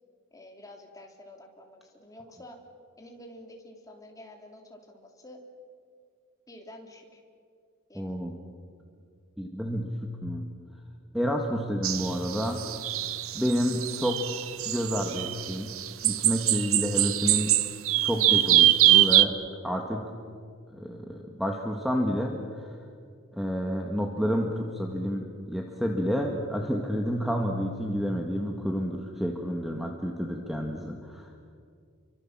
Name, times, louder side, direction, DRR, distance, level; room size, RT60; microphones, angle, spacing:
voice 1, 0.3-2.6 3.0-5.4 6.5-7.2 7.9-8.3, left 1 dB, 15° left, 2 dB, 3.4 m, -49 dB
voice 2, 7.9-8.3 9.4-10.4 11.1-12.7 13.3-14.3 14.7-15.7 16.0-17.5 18.0-19.3 19.6-20.0 20.7-22.8 23.3-31.5, equal, ahead, 1 dB, 1.8 m, -30 dB
sound 1, 11.8-19.2, right 14 dB, 75° right, 1.0 m, -23 dB
30.0 x 24.5 x 7.5 m, 2.2 s
head